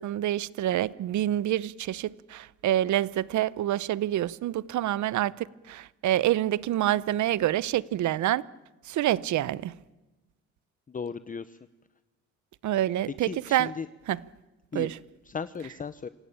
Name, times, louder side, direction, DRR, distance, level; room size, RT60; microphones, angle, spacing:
voice 1, 0.0-5.3 5.7-8.4 8.9-9.7 12.6-13.7 14.1-14.2 14.7-15.0, right 13 dB, 70° right, 0.8 m, -27 dB
voice 2, 10.9-11.6 13.2-13.9 14.7-14.9 15.3-16.1, left 5 dB, 25° left, 0.8 m, -36 dB
26.5 x 16.5 x 8.8 m
cardioid pair, 90°, 30 cm